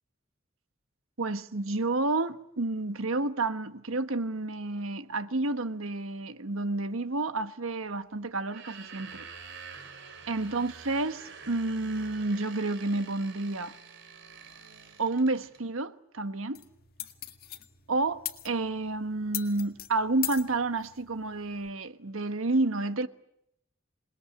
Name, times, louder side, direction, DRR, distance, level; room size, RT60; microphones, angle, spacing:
voice 1, 1.2-9.2 10.3-13.7 15.0-16.6 17.9-23.1, right 2 dB, 85° right, 1.3 m, -30 dB
sound 1, 8.4-15.6, right 5 dB, 65° right, 3.1 m, -47 dB
sound 2, 16.5-21.7, left 13 dB, 50° left, 1.9 m, -41 dB
27.5 x 20.5 x 8.7 m
head